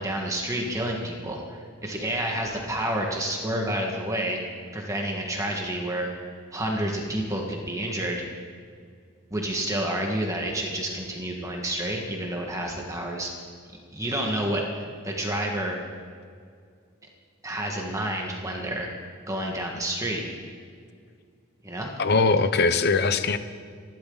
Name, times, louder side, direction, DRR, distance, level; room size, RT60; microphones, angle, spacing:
voice 1, 0.0-4.4 4.7-6.1 6.5-8.2 9.3-13.3 13.9-14.6 15.0-15.8 17.4-18.9 19.3-20.2 21.6-21.9, right 1 dB, 15° right, 0 dB, 1.8 m, -29 dB
voice 2, 22.0-23.4, left 4 dB, 50° left, 11 dB, 0.8 m, -21 dB
27.5 x 12.0 x 4.1 m, 2.2 s
head